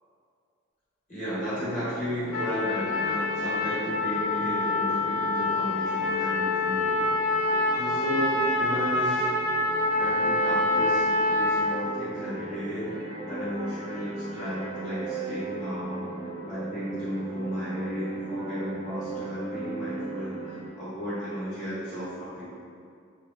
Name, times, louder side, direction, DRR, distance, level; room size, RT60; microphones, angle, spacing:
voice 1, 1.1-7.1 7.7-9.2 10.0-12.9 13.3-16.1 16.4-22.4, equal, 40° left, -10 dB, 1.1 m, -34 dB
sound 1, 1.5-20.7, right 2 dB, 20° right, 0.4 m, -38 dB
Trumpet, 2.3-11.8, left 2 dB, 85° left, 0.4 m, -26 dB
2.9 x 2.4 x 2.4 m, 2.4 s
head